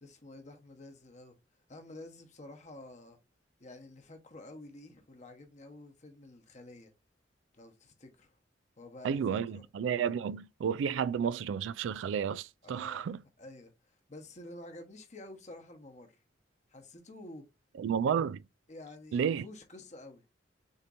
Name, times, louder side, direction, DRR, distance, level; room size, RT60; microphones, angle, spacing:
voice 1, 0.0-1.4 1.7-3.2 3.6-6.9 7.5-8.4 8.8-9.6 12.6-13.1 13.4-16.2 16.7-17.4 18.7-20.2, left 2 dB, 40° left, 1.1 m, -50 dB
voice 2, 9.0-13.2 17.8-18.4 19.1-19.5, right 7 dB, 90° right, 0.3 m, -31 dB
6.5 x 2.9 x 2.6 m
head